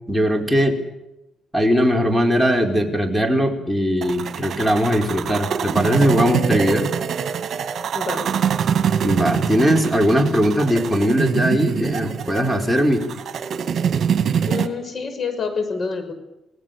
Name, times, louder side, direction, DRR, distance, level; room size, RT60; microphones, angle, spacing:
voice 1, 0.1-0.8 1.5-6.9 9.0-13.0, equal, ahead, 1 dB, 4.9 m, -19 dB
sound 1, 4.0-14.7, right 7 dB, 60° right, 2.2 m, -24 dB
voice 2, 7.9-8.3 14.5-16.1, left 4 dB, 45° left, 8 dB, 6.2 m, -27 dB
28.0 x 19.0 x 6.9 m, 0.90 s
cardioid pair, 90°, 0 cm